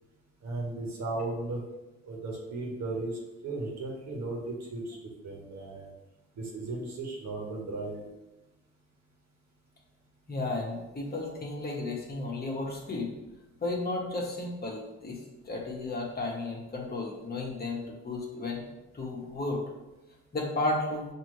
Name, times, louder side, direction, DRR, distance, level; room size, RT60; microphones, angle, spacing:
voice 1, 0.4-1.6 2.0-5.0 5.2-5.9 6.4-8.1, right 2 dB, 65° right, -2 dB, 1.3 m, -36 dB
voice 2, 10.3-13.1 13.6-15.2 15.4-18.7 18.9-19.6 20.3-21.1, left 2 dB, 30° left, -2 dB, 1.2 m, -33 dB
5.9 x 2.8 x 3.2 m, 1.0 s
cardioid pair, 90°, 30 cm